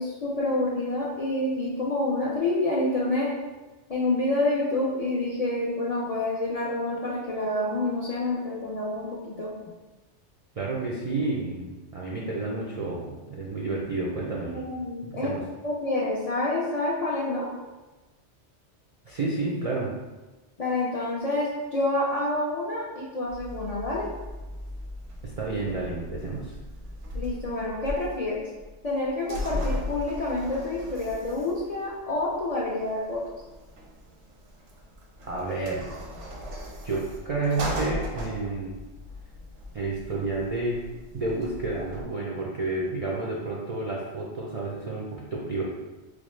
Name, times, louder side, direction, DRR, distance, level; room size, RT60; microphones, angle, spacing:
voice 1, 0.0-3.3 3.9-9.5 14.4-15.4 15.6-17.5 20.6-24.1 27.1-28.4 28.8-33.2, left 2 dB, 55° left, -5 dB, 0.4 m, -28 dB
voice 2, 10.6-14.6 15.1-15.4 19.0-19.9 25.2-26.6 35.2-35.9 36.8-38.7 39.7-40.8 41.1-45.6, right 3 dB, 60° right, -4 dB, 0.4 m, -30 dB
sound 1, 23.3-42.0, left 1 dB, 85° right, 1.0 m, -38 dB
4.9 x 2.0 x 3.1 m, 1.2 s
omnidirectional pair, 1.2 m